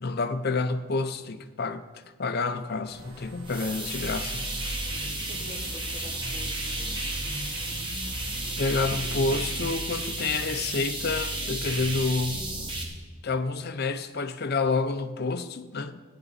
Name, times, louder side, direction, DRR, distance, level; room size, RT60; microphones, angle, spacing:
voice 1, 0.0-4.5 8.6-12.5 13.2-16.0, left 3 dB, 50° left, 0.6 m, -29 dB
sound 1, 2.8-9.6, right 1 dB, 70° right, 1.7 m, -48 dB
sound 2, 3.5-12.8, right 1 dB, 25° right, 1.7 m, -32 dB
voice 2, 5.0-7.7 8.8-9.4, left 2 dB, ahead, 2.7 m, -47 dB
15.5 x 9.9 x 4.1 m
head